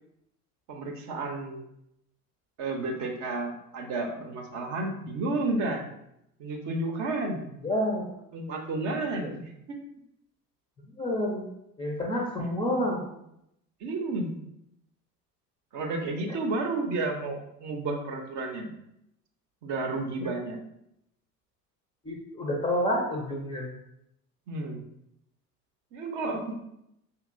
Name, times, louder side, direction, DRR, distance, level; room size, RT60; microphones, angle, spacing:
voice 1, 0.7-1.6 2.6-5.9 6.4-7.5 8.3-9.4 9.7-9.8 13.8-14.3 15.7-18.7 19.6-20.6 24.5-24.8 25.9-26.5, right 2 dB, 40° right, 3 dB, 0.8 m, -31 dB
voice 2, 7.6-8.1 9.2-9.3 10.8-11.5 11.8-13.0 16.3-16.4 20.2-20.3 22.0-23.7, left 1 dB, 10° left, -1 dB, 0.5 m, -29 dB
5.4 x 2.9 x 2.5 m, 0.80 s
figure-of-eight pair, 65°, 47 cm